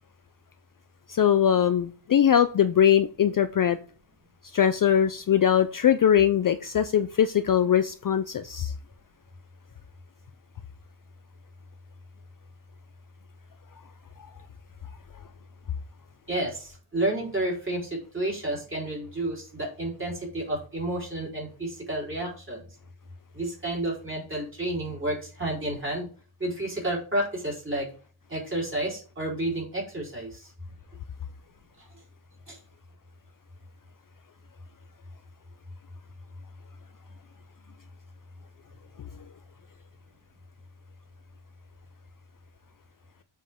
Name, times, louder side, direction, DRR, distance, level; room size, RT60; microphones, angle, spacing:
voice 1, 1.1-3.8 4.5-8.7, left 9 dB, 45° left, 11 dB, 0.5 m, -21 dB
voice 2, 16.3-22.7 23.3-26.1 26.4-27.9 28.3-30.5 31.8-31.9 32.5-32.6, right 1 dB, 25° right, -3 dB, 4.0 m, -31 dB
7.6 x 5.3 x 3.6 m, 0.39 s
wide cardioid pair, 100°, 49 cm